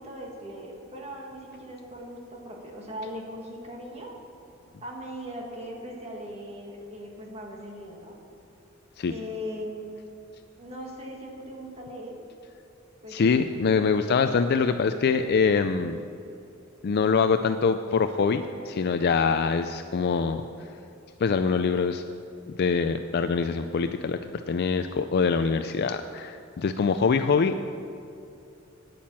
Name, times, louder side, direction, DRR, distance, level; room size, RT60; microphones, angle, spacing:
voice 1, 0.0-4.1 4.8-8.2 9.1-9.9 10.6-12.2 13.0-13.2, equal, 30° right, -1 dB, 1.7 m, -39 dB
voice 2, 13.1-16.0 16.8-20.4 21.2-22.0 22.6-24.2 24.5-27.5, left 5 dB, 50° left, 8 dB, 0.4 m, -24 dB
9.3 x 8.7 x 7.3 m, 2.7 s
head